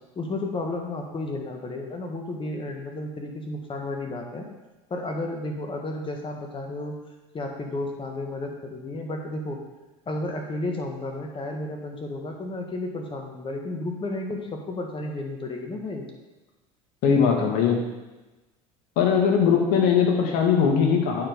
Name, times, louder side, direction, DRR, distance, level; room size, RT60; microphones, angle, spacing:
voice 1, 0.2-4.5 4.9-6.9 7.3-9.6 10.1-16.1, left 2 dB, 30° left, 2 dB, 1.7 m, -32 dB
voice 2, 17.0-17.8 19.0-21.3, left 6 dB, 60° left, 1 dB, 1.8 m, -20 dB
8.6 x 4.7 x 5.3 m, 1.1 s
hypercardioid pair, 80°, 18 cm